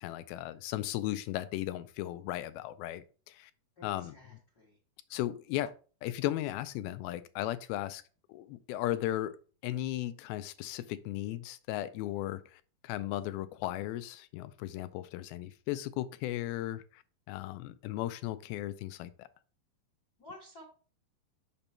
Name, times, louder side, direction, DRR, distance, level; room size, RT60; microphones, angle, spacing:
voice 1, 0.0-3.5 3.8-4.1 5.1-5.7 6.0-8.0 8.3-9.4 9.6-17.0 17.3-19.3, left 14 dB, 90° left, 2.4 m, -36 dB
voice 2, 3.7-4.8 5.1-5.3 20.2-20.6, left 1 dB, 50° left, 1.2 m, -52 dB
6.0 x 5.3 x 4.3 m
omnidirectional pair, 4.2 m